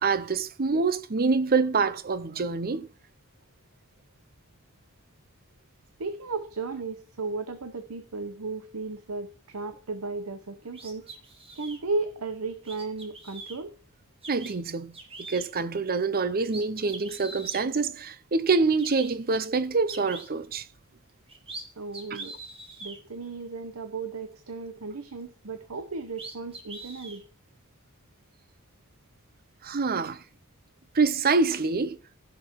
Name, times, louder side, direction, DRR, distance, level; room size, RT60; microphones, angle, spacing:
voice 1, 0.0-2.9 14.3-14.9 15.3-20.7 22.1-22.2 29.6-30.2 30.9-32.0, right 4 dB, 45° right, 0.7 m, -26 dB
voice 2, 6.0-11.1 11.5-13.7 21.8-22.4 22.8-27.2, right 3 dB, 85° right, 0.9 m, -35 dB
sound 1, 10.7-11.8 12.6-13.6 14.2-14.5 14.9-15.5 16.0-16.1 16.4-17.6 18.4-18.5 18.8-19.1 19.9-20.3 21.1-21.6 21.9-23.0 25.7-25.8 26.1-27.2, right 3 dB, 25° right, 2.1 m, -43 dB
15.5 x 6.1 x 4.6 m
head